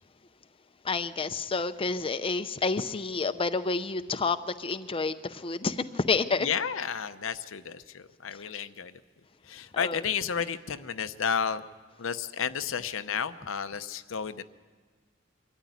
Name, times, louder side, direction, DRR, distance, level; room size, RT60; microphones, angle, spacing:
voice 1, 0.8-6.5 9.7-10.0, left 4 dB, 30° left, 10 dB, 0.6 m, -29 dB
voice 2, 6.4-8.9 9.5-11.6 12.0-14.4, left 7 dB, 85° left, 11 dB, 0.7 m, -32 dB
23.5 x 13.5 x 9.4 m, 1.5 s
head